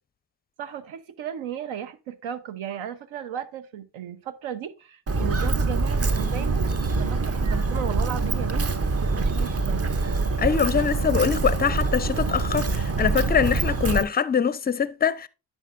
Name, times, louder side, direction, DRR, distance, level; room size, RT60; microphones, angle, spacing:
voice 1, 0.6-8.7 9.0-9.9, right 9 dB, 70° right, 0.9 m, -35 dB
Walk footsteps, 5.1-14.0, right 3 dB, 30° right, 0.8 m, -25 dB
voice 2, 10.4-15.3, left 7 dB, 20° left, 0.5 m, -23 dB
9.9 x 5.6 x 2.5 m
supercardioid pair, 55°, 50 cm